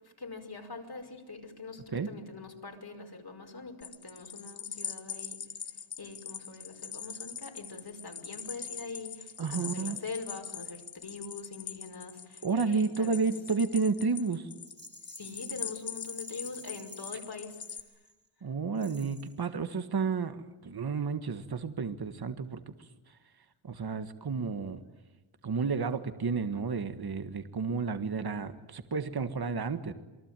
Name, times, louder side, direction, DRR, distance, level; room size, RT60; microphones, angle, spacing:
voice 1, 0.2-5.4 6.0-13.3 15.1-17.6, left 4 dB, 50° left, 3 dB, 5.4 m, -43 dB
sound 1, 3.8-17.8, left 7 dB, 65° left, 2.0 m, -42 dB
voice 2, 9.4-10.0 12.4-14.5 18.4-22.7 23.6-24.8 25.4-29.9, right 5 dB, 50° right, 9 dB, 1.7 m, -31 dB
Rattle, 14.6-18.3 18.7-19.4, right 1 dB, 20° right, 3.3 m, -53 dB
28.0 x 23.0 x 9.1 m, 1.1 s
wide cardioid pair, 115°, 49 cm